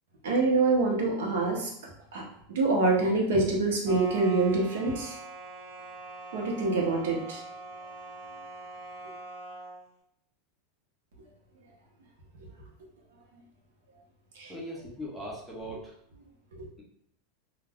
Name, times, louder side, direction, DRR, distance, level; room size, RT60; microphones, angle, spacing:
voice 1, 0.2-1.7 2.1-2.2 2.5-5.2 6.3-7.4 14.4-14.5 16.6-16.7, right 3 dB, 80° right, -1 dB, 0.8 m, -25 dB
sound 1, 3.8-9.8, right 2 dB, 60° right, 1.1 m, -43 dB
voice 2, 14.5-15.9, equal, ahead, -6 dB, 0.5 m, -39 dB
2.3 x 2.2 x 3.4 m, 0.71 s
supercardioid pair, 170°, 0 cm